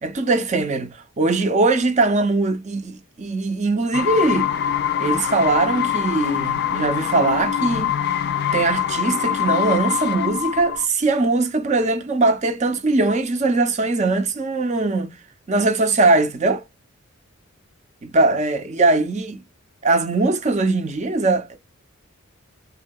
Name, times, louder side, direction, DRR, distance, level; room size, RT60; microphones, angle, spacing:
voice 1, 0.0-4.5 5.0-7.9 8.5-15.1 15.5-16.6 18.0-19.4 19.8-21.6, right 3 dB, 35° right, 0.5 m, -21 dB
sound 1, 3.9-10.9, left 9 dB, 50° left, 0.3 m, -24 dB
3.6 x 2.6 x 2.2 m
head